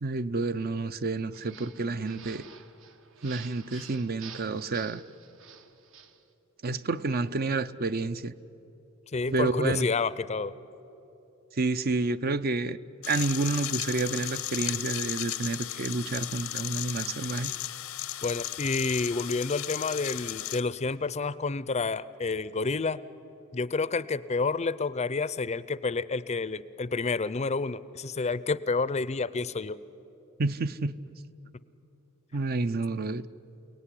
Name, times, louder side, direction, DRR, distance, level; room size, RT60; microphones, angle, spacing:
voice 1, 0.0-2.5 3.2-5.0 6.6-8.3 9.3-9.9 11.5-12.8 13.1-17.5 30.4-31.1 32.3-33.2, right 3 dB, 45° right, 0.6 m, -29 dB
sound 1, 1.3-6.2, right 7 dB, 65° right, 1.2 m, -49 dB
voice 2, 9.1-10.5 18.2-23.0 23.5-29.8, left 4 dB, 30° left, 0.5 m, -29 dB
sound 2, 13.0-20.6, left 13 dB, 90° left, 0.9 m, -35 dB
29.0 x 18.5 x 9.9 m
head